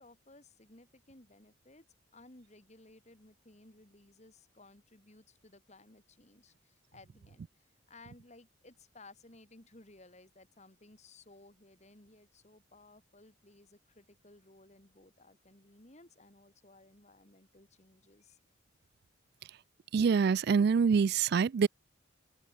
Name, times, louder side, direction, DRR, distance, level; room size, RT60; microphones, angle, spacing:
voice 1, 0.0-1.9 2.1-18.4, left 2 dB, 35° left, 2.3 m, -58 dB
voice 2, 19.9-21.7, right 6 dB, 50° right, 0.3 m, -25 dB
open air
head